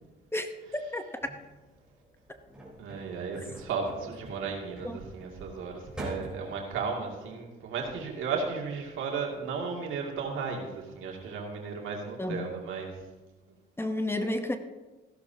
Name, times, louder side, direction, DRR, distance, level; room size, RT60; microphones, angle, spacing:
voice 1, 0.3-1.1 4.8-5.0 12.2-12.5 13.8-14.6, left 1 dB, 10° left, 7 dB, 0.9 m, -31 dB
sound 1, 1.2-6.7, right 1 dB, 5° right, 3.8 m, -45 dB
voice 2, 2.8-12.9, right 5 dB, 85° right, 0 dB, 2.3 m, -35 dB
15.0 x 12.0 x 2.8 m, 1.2 s
cardioid pair, 90°, 20 cm